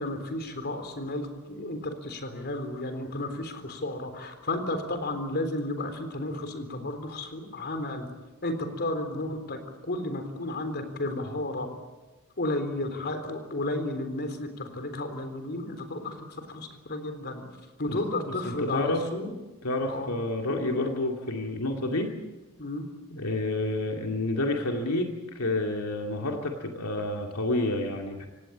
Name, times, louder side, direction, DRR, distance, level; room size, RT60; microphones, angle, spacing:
voice 1, 0.0-8.1 8.4-11.7 12.4-17.4 17.8-19.3 19.9-20.1 20.5-20.9 22.6-22.9, left 2 dB, 50° left, 8 dB, 3.8 m, -33 dB
voice 2, 18.3-19.1 19.6-22.2 23.1-28.3, left 2 dB, 80° left, 2 dB, 2.4 m, -29 dB
26.5 x 18.0 x 8.7 m, 1.1 s
head